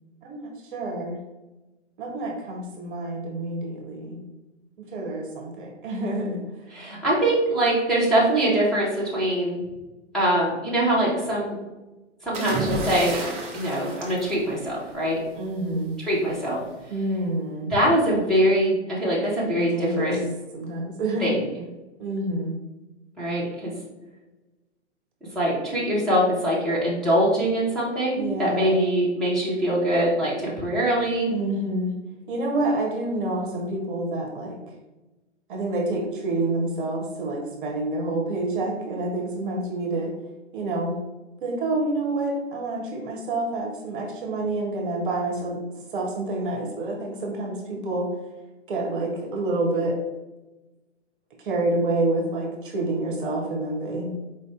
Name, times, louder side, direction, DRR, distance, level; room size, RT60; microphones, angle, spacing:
voice 1, 0.7-1.2 2.0-4.2 4.8-6.4 15.3-16.0 16.9-17.7 19.4-20.2 20.5-21.4 22.0-22.6 28.2-28.8 31.3-31.9 32.3-34.6 35.5-40.1 40.5-41.0 41.4-45.6 45.9-48.1 48.7-50.0 51.4-54.1, right 2 dB, 45° right, 1 dB, 0.8 m, -28 dB
voice 2, 6.7-9.6 10.1-11.6 12.2-13.2 13.5-15.2 16.0-16.6 17.7-20.2 21.2-21.4 23.2-23.7 25.3-31.4, right 1 dB, ahead, -8 dB, 1.0 m, -23 dB
sound 1, 12.3-15.1 16.3-16.6, right 3 dB, 15° right, 0.6 m, -32 dB
4.4 x 2.6 x 3.5 m, 1.1 s
figure-of-eight pair, 115°, 36 cm